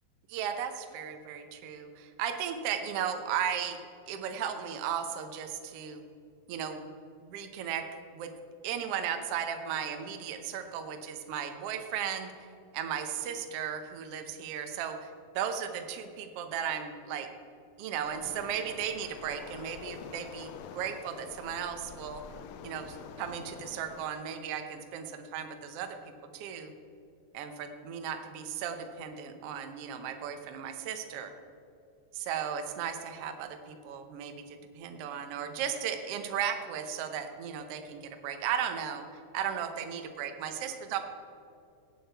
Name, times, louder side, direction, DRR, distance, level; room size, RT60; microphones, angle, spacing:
voice 1, 0.3-3.8 4.1-6.0 6.5-6.9 7.3-7.9 8.1-8.3 8.6-12.3 12.7-17.3 17.8-22.2 22.6-26.0 26.3-26.7 27.3-31.3 32.1-39.0 39.3-41.0, right 8 dB, 85° right, 6 dB, 1.3 m, -35 dB
Waves surf, 18.0-24.1, left 7 dB, 80° left, 2.3 m, -47 dB
18.0 x 8.6 x 4.6 m, 2.5 s
omnidirectional pair, 4.1 m